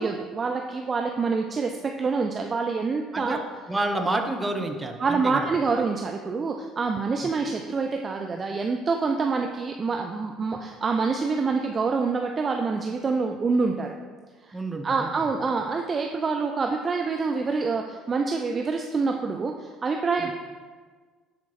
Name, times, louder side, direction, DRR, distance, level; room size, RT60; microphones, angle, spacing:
voice 1, 0.0-3.4 5.0-13.9 14.4-14.5 14.8-20.3, right 4 dB, 30° right, 3 dB, 0.6 m, -26 dB
voice 2, 3.7-5.5 14.5-15.1 20.2-20.3, right 2 dB, 15° right, 4 dB, 1.1 m, -29 dB
10.5 x 4.5 x 4.2 m, 1.5 s
figure-of-eight pair, 55°, 0 cm